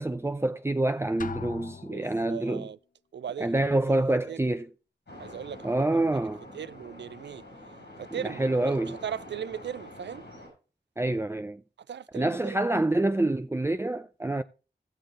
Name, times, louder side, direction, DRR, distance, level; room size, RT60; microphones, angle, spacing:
voice 1, 0.0-2.7 3.4-4.7 5.6-6.4 8.1-9.0 11.0-11.6 12.1-14.4, right 2 dB, 15° right, 0.5 m, -27 dB
Drum, 1.2-2.4, left 6 dB, 50° left, 0.5 m, -40 dB
voice 2, 1.9-2.8 3.1-3.8 4.3-4.4 5.2-5.9 6.5-7.5 8.0-10.3 11.9-12.6, right 8 dB, 90° right, 0.4 m, -38 dB
sound 1, 5.1-10.5, left 1 dB, 85° left, 6.5 m, -46 dB
17.0 x 6.6 x 3.8 m
cardioid pair, 40°, 18 cm